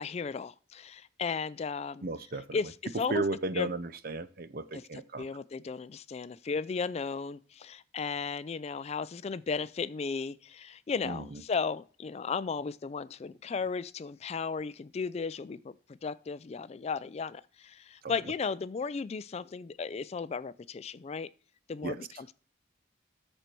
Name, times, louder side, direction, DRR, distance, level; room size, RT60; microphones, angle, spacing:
voice 1, 0.0-2.1 2.5-3.2 3.5-3.7 4.7-15.7 16.0-21.3 21.7-22.3, left 5 dB, 35° left, 0.3 m, -35 dB
voice 2, 2.0-2.6 3.1-5.3 11.0-11.4 18.0-18.1 21.8-22.1, right 3 dB, 50° right, 0.6 m, -34 dB
13.5 x 4.4 x 4.5 m
head